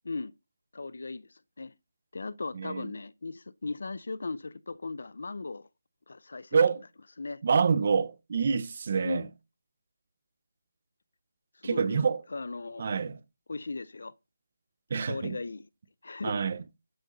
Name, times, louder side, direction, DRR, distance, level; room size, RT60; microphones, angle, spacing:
voice 1, 0.7-1.7 2.1-5.7 6.1-6.6 7.2-7.4 9.0-9.3 11.5-12.0 12.3-12.9 13.5-14.1 15.0-15.7 16.0-16.4, left 3 dB, 55° left, 0.5 m, -37 dB
voice 2, 2.5-2.9 6.5-6.8 7.4-9.2 11.6-12.2 12.8-13.2 14.9-15.4 16.2-16.6, right 5 dB, 30° right, 0.8 m, -26 dB
12.0 x 7.8 x 3.9 m
hypercardioid pair, 180°, 0 cm